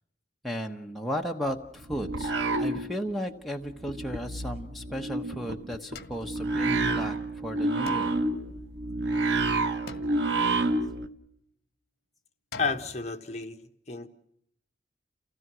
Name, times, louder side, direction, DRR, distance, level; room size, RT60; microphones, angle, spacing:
voice 1, 0.4-8.1, equal, ahead, 1 dB, 1.0 m, -35 dB
sound 1, 1.5-3.3 3.6-11.1, right 2 dB, 85° right, 1.2 m, -29 dB
sound 2, 5.9-7.1 7.9-9.3 9.9-11.2 12.5-13.1, left 3 dB, 55° left, 1.5 m, -46 dB
voice 2, 12.6-13.6 13.9-14.1, left 4 dB, 40° left, 7 dB, 1.2 m, -31 dB
28.5 x 17.0 x 6.2 m, 0.77 s
head